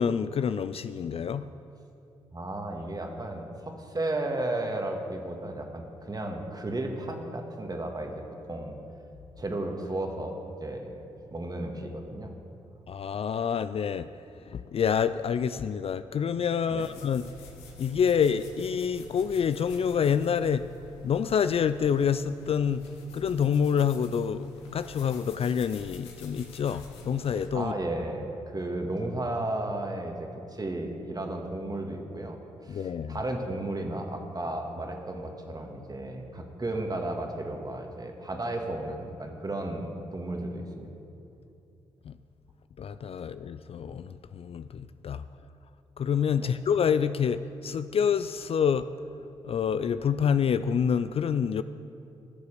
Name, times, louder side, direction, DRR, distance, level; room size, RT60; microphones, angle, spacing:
voice 1, 0.0-1.5 12.9-14.1 14.5-17.2 17.8-20.7 21.0-22.8 23.1-27.7 32.7-33.2 42.1-42.2 42.8-45.2 46.0-48.9 49.4-51.6, left 7 dB, 45° left, 13 dB, 0.4 m, -27 dB
voice 2, 2.3-8.8 9.4-12.3 16.7-16.9 27.5-40.9 46.3-46.5, right 1 dB, 30° right, 3 dB, 1.9 m, -34 dB
sound 1, 16.8-27.5, left 5 dB, 90° left, 1.0 m, -48 dB
14.0 x 6.8 x 6.7 m, 2.7 s
hypercardioid pair, 40°, 14 cm